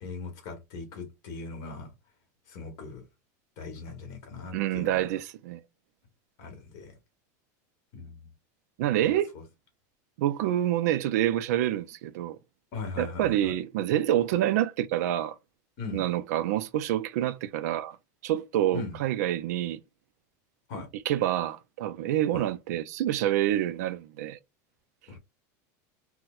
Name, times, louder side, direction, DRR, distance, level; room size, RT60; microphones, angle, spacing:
voice 1, 0.0-1.9 2.5-3.0 3.6-5.1 6.4-6.9 7.9-8.3 12.7-13.5 15.8-16.0 18.7-19.0 20.7-20.9 22.3-22.4 25.1-25.2, left 4 dB, 40° left, 1.2 m, -39 dB
voice 2, 4.5-5.6 8.8-9.3 10.2-12.4 13.0-15.4 15.9-18.0 18.2-19.8 21.1-24.4, right 12 dB, 65° right, 0.4 m, -27 dB
4.2 x 2.1 x 2.3 m
supercardioid pair, 180°, 9 cm